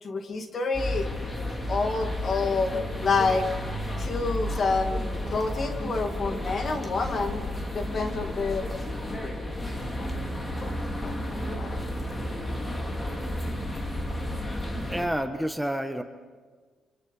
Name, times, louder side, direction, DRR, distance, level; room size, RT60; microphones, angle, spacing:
voice 1, 0.0-1.1 1.7-2.7 3.0-3.5 4.0-7.4 7.7-8.6 10.0-10.1 10.6-10.7 11.0-11.9, left 3 dB, 45° left, 6 dB, 2.6 m, -28 dB
sound 1, 0.7-15.1, left 1 dB, 20° left, 3.1 m, -32 dB
voice 2, 14.9-16.0, equal, 5° right, 7 dB, 1.3 m, -30 dB
27.5 x 26.0 x 5.5 m, 1.5 s
cardioid pair, 90°, 0 cm